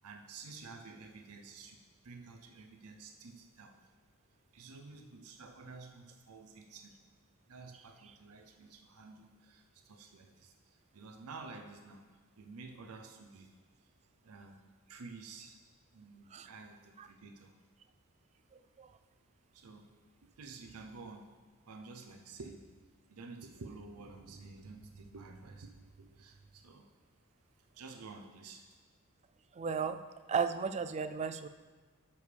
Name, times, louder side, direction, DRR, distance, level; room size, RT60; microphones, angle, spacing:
voice 1, 0.0-3.9 4.3-7.0 7.5-14.0 14.2-14.6 14.9-15.6 15.9-17.6 19.5-21.3 21.6-26.9 27.3-28.8, right 4 dB, 80° right, 4 dB, 0.6 m, -51 dB
voice 2, 29.5-30.0 30.3-31.5, right 6 dB, 30° right, 10 dB, 0.3 m, -34 dB
10.5 x 6.9 x 3.4 m, 1.4 s
head